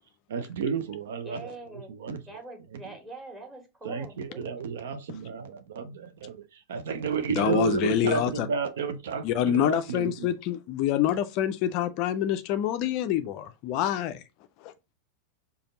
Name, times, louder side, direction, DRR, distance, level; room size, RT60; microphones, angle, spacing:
voice 1, 0.3-2.4 2.7-2.8 3.8-10.3, right 6 dB, 60° right, 0.4 m, -32 dB
voice 2, 1.2-1.9 2.3-4.5, right 2 dB, 15° right, 1.5 m, -44 dB
voice 3, 7.4-8.5 9.2-14.2 14.6-14.7, left 11 dB, 40° left, 0.4 m, -26 dB
5.0 x 2.3 x 3.8 m
figure-of-eight pair, 90°, 0 cm